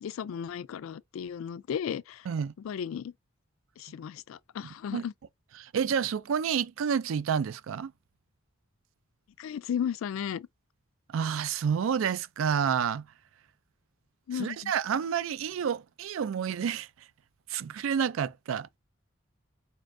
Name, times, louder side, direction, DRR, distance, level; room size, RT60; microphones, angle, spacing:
voice 1, 0.0-2.3 2.6-3.1 3.8-5.1 9.4-10.5 14.3-14.7, left 8 dB, 80° left, 0.3 m, -35 dB
voice 2, 5.6-7.9 11.1-13.1 14.3-16.9 17.5-18.8, right 7 dB, 80° right, 0.3 m, -29 dB
4.2 x 2.5 x 3.2 m
head